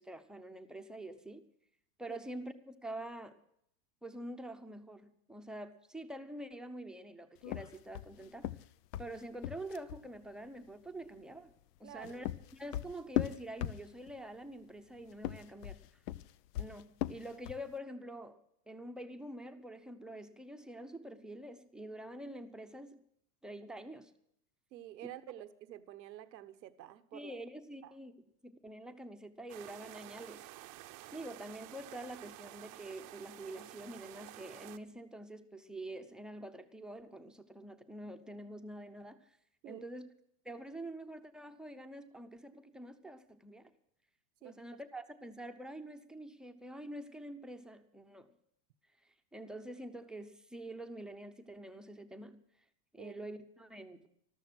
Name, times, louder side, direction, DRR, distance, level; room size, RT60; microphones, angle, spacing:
voice 1, 0.0-1.4 2.0-3.4 4.0-8.5 9.0-11.5 11.8-12.3 12.5-15.8 16.6-18.4 18.7-23.0 23.4-24.1 27.1-28.1 28.4-30.5 31.1-39.3 39.6-40.1 40.4-43.7 44.4-48.3 49.3-52.4 52.9-54.1, right 1 dB, ahead, 0.8 m, -46 dB
sound 1, 7.4-10.1 11.8-14.2 15.1-17.7, left 12 dB, 70° left, 0.8 m, -38 dB
voice 2, 11.8-12.3 24.7-27.4 27.8-27.9 39.6-39.8 44.4-44.8 53.0-53.2, right 13 dB, 90° right, 1.1 m, -49 dB
sound 2, 29.5-34.8, right 16 dB, 35° right, 0.8 m, -51 dB
14.0 x 13.0 x 6.2 m
supercardioid pair, 135°, 49 cm